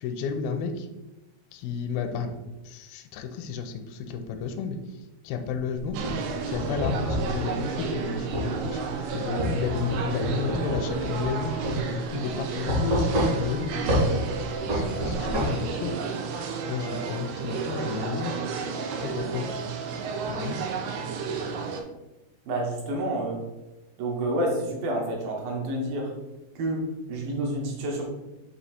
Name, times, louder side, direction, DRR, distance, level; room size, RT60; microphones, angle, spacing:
voice 1, 0.0-0.9 1.5-2.4 2.7-4.8 5.3-6.0 6.5-8.8 9.1-11.5 11.8-13.9 14.6-15.9 16.7-18.3 19.0-19.5 20.3-20.6, left 6 dB, 80° left, 6 dB, 2.3 m, -32 dB
sound 1, 5.8-7.3 8.3-8.5 9.4-11.4 11.6-11.8 12.7-13.5 13.9-14.1 14.7-15.5, equal, 45° right, 1.0 m, -26 dB
sound 2, 5.9-21.8, right 5 dB, 90° right, 2.8 m, -32 dB
voice 2, 22.5-23.4 24.0-26.1 26.6-28.1, right 1 dB, 70° right, -1 dB, 2.7 m, -29 dB
7.9 x 2.8 x 4.2 m, 1.0 s
omnidirectional pair, 4.6 m